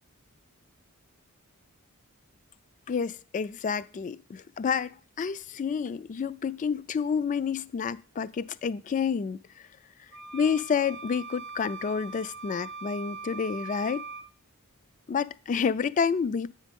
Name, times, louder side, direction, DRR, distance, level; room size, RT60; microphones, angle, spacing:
voice 1, 2.9-9.4 10.3-14.0 15.1-16.6, left 6 dB, 35° left, 0.3 m, -29 dB
sound 1, 10.1-14.3, right 4 dB, 55° right, 0.6 m, -41 dB
8.2 x 5.2 x 5.2 m
head